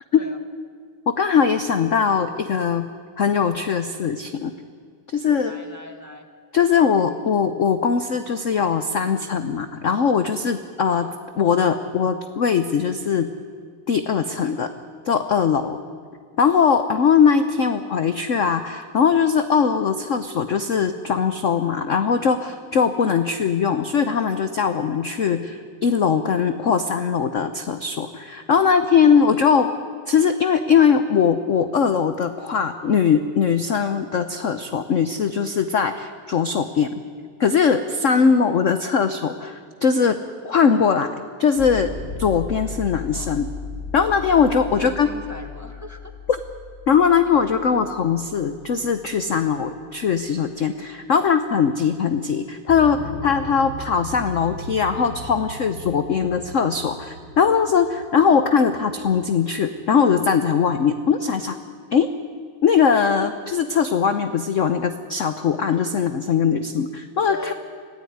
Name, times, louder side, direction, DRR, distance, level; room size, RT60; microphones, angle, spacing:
voice 1, 1.1-2.9 3.2-4.5 5.1-5.5 6.5-11.1 11.4-13.3 13.9-14.7 15.1-15.8 16.4-29.7 30.1-37.0 37.4-40.2 40.4-41.1 41.4-41.9 42.2-43.5 43.9-45.1 46.3-46.4 46.9-61.6 61.9-62.1 62.6-67.5, left 6 dB, 55° left, 10 dB, 0.8 m, -20 dB
voice 2, 5.4-6.3 10.9-11.2 23.0-23.2 29.2-29.4 43.1-43.4 44.6-46.1 61.1-61.4 67.3-67.5, left 1 dB, 10° right, 6 dB, 1.4 m, -39 dB
sound 1, 41.6-49.4 52.7-58.7, left 2 dB, 15° left, 7.0 m, -37 dB
26.0 x 16.0 x 9.4 m, 2.1 s
omnidirectional pair, 2.3 m